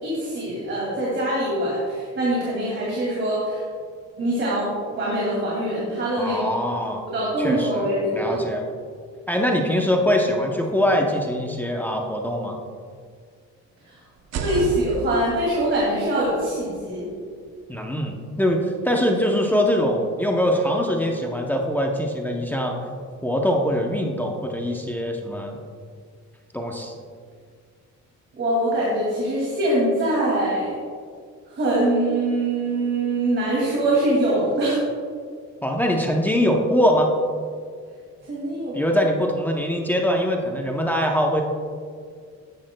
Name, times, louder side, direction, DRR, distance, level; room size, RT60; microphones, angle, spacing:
voice 1, 0.0-3.6 4.2-6.4 7.1-8.4 14.4-17.0 28.4-30.8 31.5-34.8 38.3-38.8, right 1 dB, 40° right, -5 dB, 2.3 m, -23 dB
voice 2, 6.2-7.0 7.4-7.9 8.1-8.7 9.3-12.6 17.7-22.8 23.2-25.6 26.5-26.9 35.6-37.1 38.7-41.4, equal, 5° left, 0 dB, 0.6 m, -23 dB
sound 1, 14.2-18.0, right 5 dB, 65° right, 0.8 m, -35 dB
14.0 x 10.5 x 2.2 m, 2.1 s
cardioid pair, 175°, 29 cm